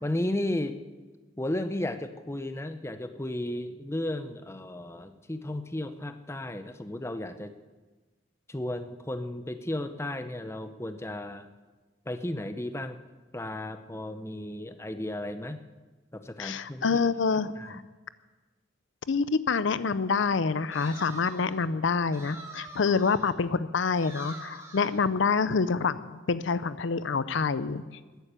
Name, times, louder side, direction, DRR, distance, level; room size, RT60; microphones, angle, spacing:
voice 1, 0.0-0.8 1.4-7.5 8.5-11.5 12.1-13.0 13.3-15.6 16.1-16.8 17.6-17.8, left 1 dB, 15° left, 10 dB, 0.6 m, -34 dB
voice 2, 16.4-17.8 19.1-27.8, left 5 dB, 65° left, 15 dB, 0.5 m, -27 dB
sound 1, 20.7-21.6 22.1-23.4 23.9-25.0, right 2 dB, 15° right, 2.1 m, -45 dB
13.5 x 9.2 x 8.7 m, 1.3 s
head